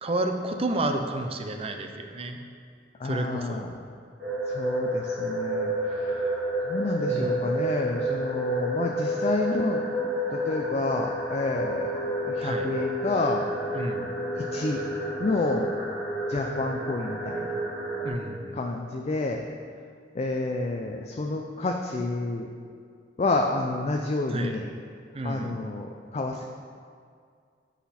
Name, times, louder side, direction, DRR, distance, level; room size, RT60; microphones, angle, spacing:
voice 1, 0.0-2.4 3.0-3.6 7.1-7.5 12.4-12.7 13.7-14.2 18.0-18.6 24.3-24.5 25.1-25.5, right 2 dB, 35° right, 5 dB, 0.6 m, -30 dB
voice 2, 3.0-3.7 4.5-6.4 6.7-9.8 10.3-11.9 12.2-13.5 14.3-14.8 15.2-15.7 16.3-17.5 18.5-19.5 20.1-22.5 23.2-24.7 25.2-26.4, left 2 dB, 35° left, 2 dB, 0.4 m, -29 dB
sound 1, 4.2-18.1, right 1 dB, 70° right, 2.1 m, -30 dB
8.3 x 5.7 x 4.2 m, 2.2 s
head